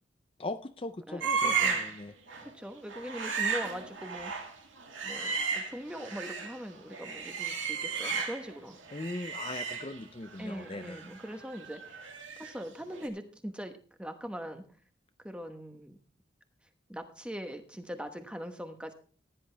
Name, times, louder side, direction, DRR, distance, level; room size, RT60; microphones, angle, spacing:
voice 1, 0.4-2.1 8.9-11.0, left 2 dB, 30° left, 9 dB, 0.5 m, -39 dB
voice 2, 1.1-1.8 2.4-4.3 5.0-9.0 10.4-11.8 12.4-13.7 14.0-14.6 15.2-16.0 16.9-18.9, equal, 5° right, 7 dB, 1.1 m, -41 dB
sound 1, 1.2-2.0 2.3-2.5 2.9-6.6 6.9-8.6 8.9-12.6 12.9-13.1, right 5 dB, 90° right, 2.4 m, -34 dB
15.5 x 10.0 x 3.3 m, 0.40 s
head